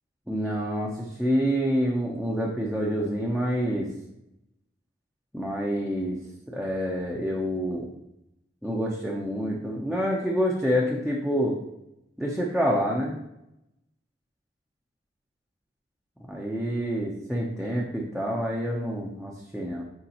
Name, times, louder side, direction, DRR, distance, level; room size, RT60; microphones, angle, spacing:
voice 1, 0.3-3.9 5.3-6.2 6.5-7.9 8.6-11.6 12.2-13.1 16.3-19.8, equal, ahead, -4 dB, 0.7 m, -27 dB
9.4 x 3.7 x 2.9 m, 0.86 s
head